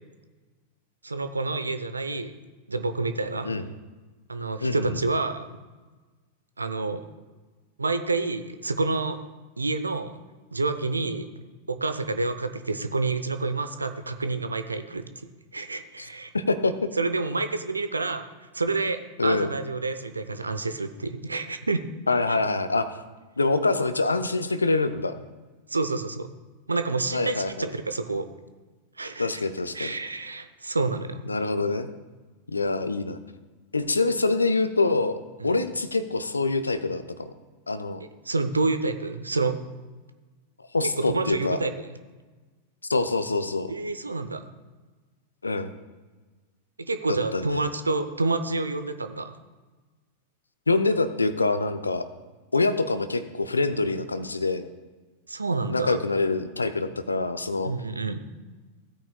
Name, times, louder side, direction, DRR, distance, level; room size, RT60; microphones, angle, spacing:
voice 1, 1.0-2.4 2.7-3.5 4.3-5.6 6.6-7.0 7.8-9.2 9.6-10.1 10.5-11.3 11.7-15.1 15.5-16.3 17.0-21.8 25.7-26.3 26.7-28.3 29.0-29.3 29.7-31.2 35.4-35.6 38.3-39.6 40.8-41.7 43.7-44.4 46.8-49.4 55.3-56.0 57.6-58.2, right 3 dB, 80° right, 10 dB, 0.6 m, -28 dB
voice 2, 4.6-5.0 16.0-16.1 16.3-16.9 19.2-19.5 22.1-22.9 23.4-25.2 27.1-27.7 29.2-29.9 31.3-31.9 32.5-33.2 33.7-37.3 37.7-38.0 40.7-41.6 42.9-43.7 45.4-45.7 47.1-47.7 50.7-52.1 52.5-54.7 55.7-57.7, left 3 dB, 80° left, 11 dB, 0.6 m, -25 dB
16.0 x 8.8 x 2.2 m, 1.3 s
figure-of-eight pair, 90°, 0 cm